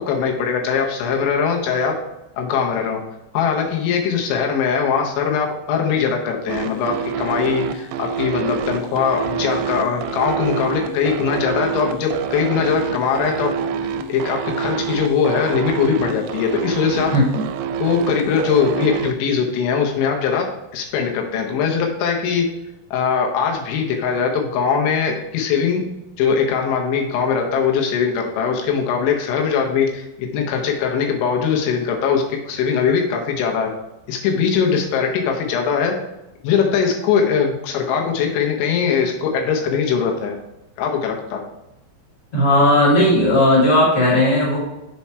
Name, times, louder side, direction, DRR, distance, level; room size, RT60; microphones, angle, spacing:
voice 1, 0.0-2.0 2.4-3.0 3.3-13.5 14.1-17.1 17.8-22.5 22.9-25.9 26.2-33.8 34.1-36.0 36.4-40.4 40.8-41.4, left 6 dB, 85° left, 1 dB, 3.3 m, -21 dB
sound 1, 6.5-19.1, right 6 dB, 90° right, 3.0 m, -26 dB
voice 2, 42.3-44.6, left 1 dB, 15° left, -7 dB, 1.4 m, -15 dB
7.0 x 4.3 x 4.6 m, 0.94 s
omnidirectional pair, 5.4 m